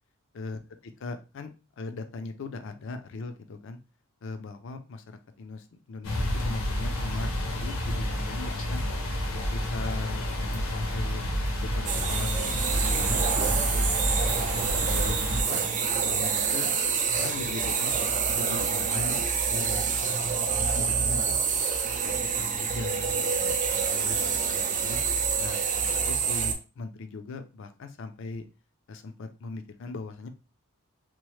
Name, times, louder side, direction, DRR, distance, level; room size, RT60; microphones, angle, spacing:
voice 1, 0.3-1.5 1.8-3.8 4.2-8.8 9.5-11.2 11.6-13.9 14.2-15.6 16.0-16.7 17.1-18.0 18.4-19.2 19.5-20.5 20.7-21.3 22.0-25.0 25.4-25.6 25.9-28.4 28.9-30.3, left 3 dB, 60° left, 8 dB, 0.4 m, -39 dB
sound 1, 6.0-15.4, equal, 85° left, 0.8 m, -29 dB
sound 2, 11.9-26.5, right 6 dB, 35° right, 0.4 m, -27 dB
2.9 x 2.0 x 3.0 m, 0.31 s
head